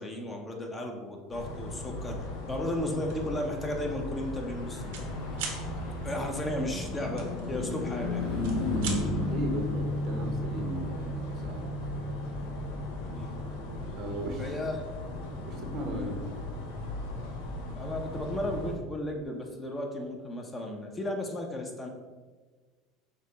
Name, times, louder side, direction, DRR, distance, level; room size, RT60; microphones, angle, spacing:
voice 1, 0.0-2.2 2.5-5.1 6.0-8.2 13.0-13.3 14.4-14.9 15.2-15.3 15.9-16.1 17.7-21.9, left 1 dB, 15° left, 2 dB, 0.6 m, -34 dB
sound 1, 1.3-18.7, left 2 dB, 80° left, 0.7 m, -38 dB
sound 2, 3.0-3.3 3.7-3.9 4.2-5.1 5.3-5.6 7.2-8.0 8.3-9.0, right 5 dB, 85° right, 0.9 m, -38 dB
Car passing by / Truck, 4.2-17.9, left 2 dB, 65° left, 1.2 m, -36 dB
voice 2, 9.3-11.7 13.9-14.5 15.4-16.2, right 1 dB, 50° right, 3 dB, 0.7 m, -36 dB
5.4 x 2.1 x 3.9 m, 1.4 s
supercardioid pair, 130°, 0 cm